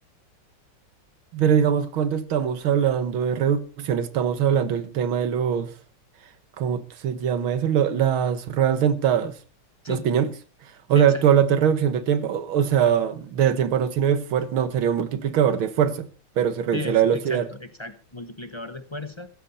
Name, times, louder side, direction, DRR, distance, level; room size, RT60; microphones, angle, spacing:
voice 1, 1.3-5.7 6.6-9.4 9.9-10.3 10.9-16.1 16.4-17.5, right 8 dB, 75° right, 2.0 m, -22 dB
voice 2, 10.9-11.2 16.7-19.3, left 2 dB, 30° left, 0.5 m, -35 dB
16.0 x 14.5 x 4.2 m
omnidirectional pair, 2.3 m